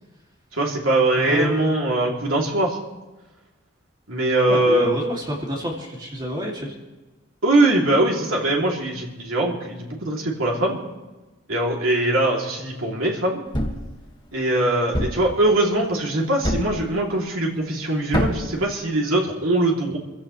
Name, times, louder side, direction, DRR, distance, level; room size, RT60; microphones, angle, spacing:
voice 1, 0.5-2.8 4.1-4.9 7.4-10.8 11.5-13.4 14.3-20.0, right 2 dB, 80° right, -2 dB, 3.0 m, -21 dB
voice 2, 1.2-1.9 4.5-6.7, equal, 20° right, -2 dB, 2.5 m, -29 dB
Thump thud, 13.5-13.9 14.9-15.3 16.4-16.8 18.1-18.5, equal, 20° left, 1.8 m, -24 dB
26.0 x 16.0 x 3.2 m, 1.1 s
head